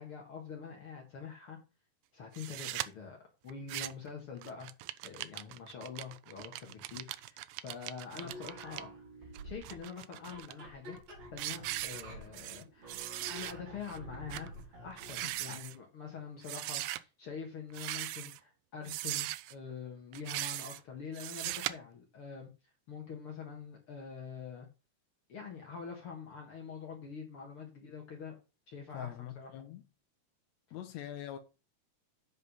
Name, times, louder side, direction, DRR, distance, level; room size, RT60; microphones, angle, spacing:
voice 1, 0.0-1.6 2.1-3.2 3.4-4.7 5.0-8.9 9.2-11.0 11.3-12.9 13.3-22.5 22.9-24.7 25.3-28.4 28.7-29.5, left 6 dB, 50° left, 2.2 m, -45 dB
Metal Tool Clamp Sliding, 2.4-2.9 3.5-4.1 4.4-8.8 9.4-10.5 11.0-11.1 11.4-12.6 12.9-13.5 13.9-14.0 14.3-14.5 14.9-15.8 16.4-17.0 17.7-18.4 18.9-19.5 20.1-20.8 21.2-21.7, right 16 dB, 90° right, 2.1 m, -39 dB
sound 1, 8.1-15.4, right 1 dB, 60° right, 4.8 m, -49 dB
voice 2, 15.2-15.6 28.9-29.8 30.7-31.4, left 11 dB, 75° left, 2.0 m, -44 dB
8.2 x 5.4 x 5.4 m
omnidirectional pair, 3.5 m